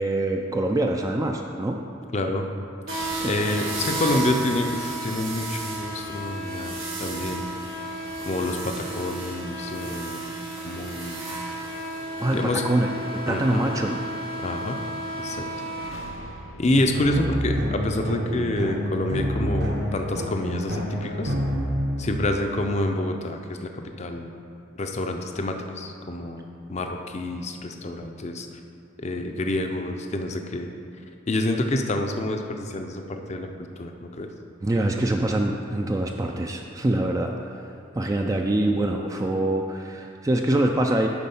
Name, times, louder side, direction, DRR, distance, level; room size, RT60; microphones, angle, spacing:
voice 1, 0.0-1.8 3.2-3.3 12.2-14.0 34.6-37.7 38.0-41.1, right 1 dB, 15° right, 2 dB, 0.3 m, -25 dB
voice 2, 2.1-2.5 2.9-7.5 7.8-7.9 8.2-10.4 10.6-11.2 12.3-12.6 13.3-13.7 14.4-14.8 15.2-15.5 15.8-15.9 16.6-21.3 22.0-24.3 24.8-28.5 29.0-30.7 31.3-33.5 33.8-34.3, left 1 dB, 35° left, 4 dB, 0.5 m, -28 dB
sound 1, 2.9-15.9, right 1 dB, 90° right, 1.8 m, -33 dB
sound 2, 15.3-19.2, left 1 dB, 85° left, 0.8 m, -45 dB
sound 3, 16.7-22.7, equal, 55° right, 1.0 m, -28 dB
9.7 x 4.2 x 5.5 m, 2.5 s
head